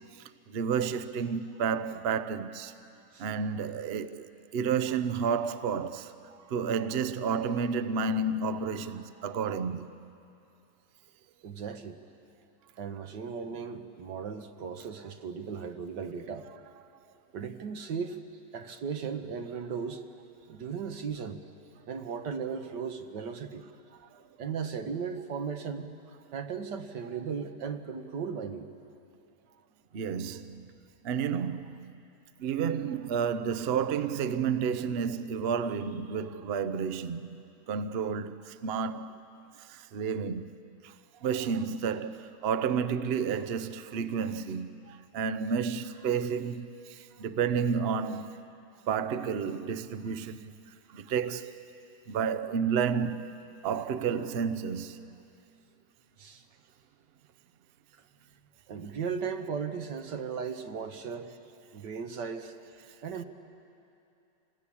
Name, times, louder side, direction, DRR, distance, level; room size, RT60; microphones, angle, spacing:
voice 1, 0.5-2.7 3.2-4.3 4.5-6.1 6.5-9.9 29.9-30.7 31.0-32.0 32.4-39.1 39.7-40.5 41.2-48.4 48.9-50.5 50.9-51.6 52.1-53.3 53.6-55.0, right 6 dB, 50° right, 0.7 m, -31 dB
voice 2, 11.4-12.0 12.8-16.5 17.3-18.2 18.5-20.0 20.5-21.4 21.9-23.6 24.4-25.9 26.3-28.7 56.2-56.4 58.7-61.3 61.7-62.5 63.0-63.2, right 6 dB, 75° right, 1.8 m, -36 dB
28.5 x 19.5 x 8.5 m
omnidirectional pair, 1.9 m